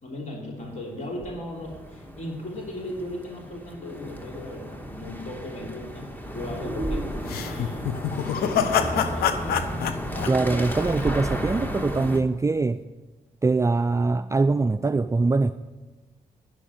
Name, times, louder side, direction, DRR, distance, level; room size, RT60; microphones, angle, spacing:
voice 1, 0.0-9.7, left 1 dB, 50° left, -1 dB, 3.2 m, -37 dB
sound 1, 0.6-12.2, equal, 10° left, 1.7 m, -33 dB
sound 2, 7.3-11.4, left 8 dB, 85° left, 0.7 m, -26 dB
voice 2, 10.3-12.8 13.4-15.5, right 3 dB, 20° right, 10 dB, 0.4 m, -23 dB
10.0 x 6.4 x 8.8 m, 1.2 s
supercardioid pair, 50°, 16 cm